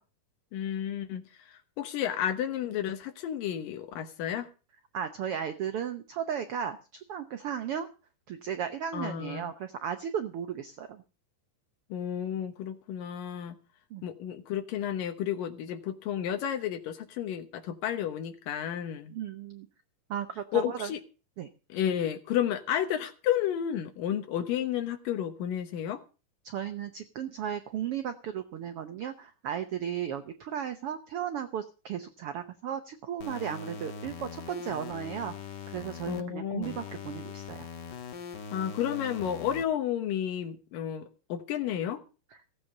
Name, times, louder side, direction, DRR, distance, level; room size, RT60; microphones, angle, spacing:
voice 1, 0.5-4.5 8.9-9.5 11.9-13.6 14.0-19.1 20.5-21.0 21.7-26.0 36.1-36.8 38.5-42.0, left 10 dB, 85° left, 7 dB, 2.8 m, -32 dB
voice 2, 4.9-7.9 8.3-11.0 13.9-14.0 19.1-19.7 20.1-20.9 21.4-21.5 26.4-35.3 35.7-37.7, right 9 dB, 80° right, 9 dB, 1.3 m, -35 dB
sound 1, 33.2-36.2 36.6-39.6, left 5 dB, 50° left, 1.3 m, -41 dB
15.5 x 8.7 x 6.6 m, 0.34 s
omnidirectional pair, 3.9 m